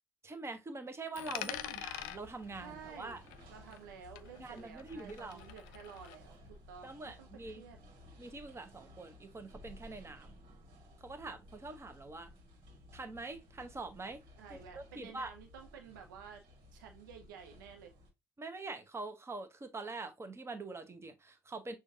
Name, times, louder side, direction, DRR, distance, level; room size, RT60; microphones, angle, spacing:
voice 1, 0.2-3.2 4.4-5.4 6.8-7.6 8.2-10.3 11.0-12.3 12.9-14.2 14.5-15.3 18.4-21.7, right 3 dB, 25° right, 0.9 m, -44 dB
Coin (dropping), 1.1-3.9 4.2-6.2, left 14 dB, 70° left, 0.4 m, -45 dB
voice 2, 1.4-1.9 2.6-3.2 3.5-7.8 14.4-16.4 16.7-17.9, right 7 dB, 80° right, 0.6 m, -52 dB
sound 1, 1.5-18.1, left 1 dB, 55° right, 1.5 m, -57 dB
6.1 x 2.4 x 2.7 m
figure-of-eight pair, 50°, 10 cm